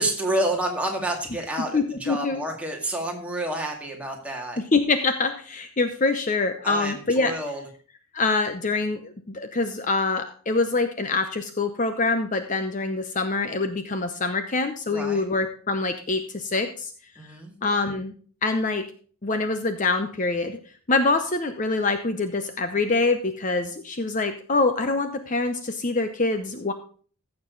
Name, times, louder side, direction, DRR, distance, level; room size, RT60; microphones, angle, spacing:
voice 1, 0.0-4.6 6.6-7.6 14.9-15.2 17.2-17.5, right 1 dB, 5° right, 0 dB, 2.1 m, -29 dB
voice 2, 1.7-2.4 4.6-7.3 8.1-16.9 17.6-18.1 18.4-18.8 19.2-20.6 20.9-26.7, left 3 dB, 35° left, 8 dB, 0.7 m, -25 dB
15.0 x 6.8 x 3.9 m, 0.43 s
head